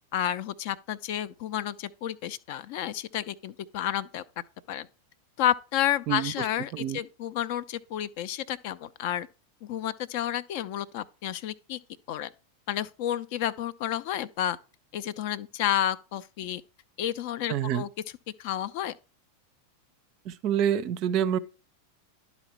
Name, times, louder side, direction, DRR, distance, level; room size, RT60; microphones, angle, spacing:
voice 1, 0.1-4.2 4.7-4.9 5.4-9.3 9.6-11.8 12.1-12.3 12.7-14.6 14.9-16.6 17.0-17.9 18.4-19.0, left 11 dB, 45° left, 0.4 m, -31 dB
voice 2, 17.5-17.9 20.2-21.4, right 9 dB, 40° right, 0.5 m, -27 dB
11.0 x 4.1 x 4.4 m
figure-of-eight pair, 90°, 0 cm